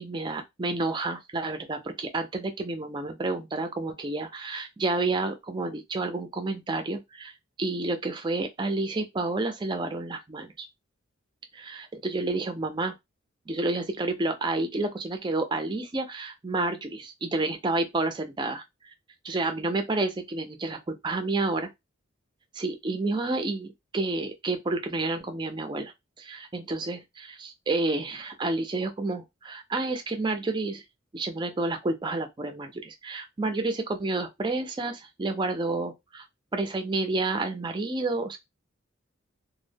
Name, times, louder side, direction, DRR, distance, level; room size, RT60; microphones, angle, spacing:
voice 1, 0.0-7.3 7.6-10.5 11.5-12.9 13.5-18.9 19.2-21.7 22.5-25.9 26.2-30.8 31.1-36.2 36.5-38.4, right 2 dB, 20° right, 0.3 m, -30 dB
2.0 x 2.0 x 3.3 m
head